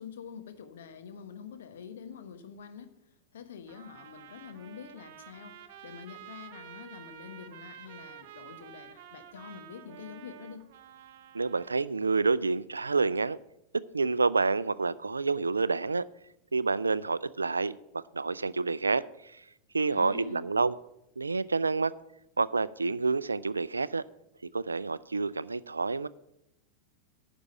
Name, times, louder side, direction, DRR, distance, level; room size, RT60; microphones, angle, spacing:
voice 1, 0.0-2.9 3.3-10.6 19.8-20.4, left 7 dB, 60° left, 8 dB, 1.1 m, -46 dB
Trumpet, 3.7-11.8, right 10 dB, 50° right, 0.8 m, -50 dB
voice 2, 11.3-13.4 13.7-16.0 16.5-19.4 19.7-20.7 21.2-21.9 22.4-24.0 24.5-26.1, right 4 dB, 80° right, 19 dB, 0.3 m, -28 dB
9.8 x 6.1 x 8.0 m, 0.85 s
figure-of-eight pair, 90°, 0 cm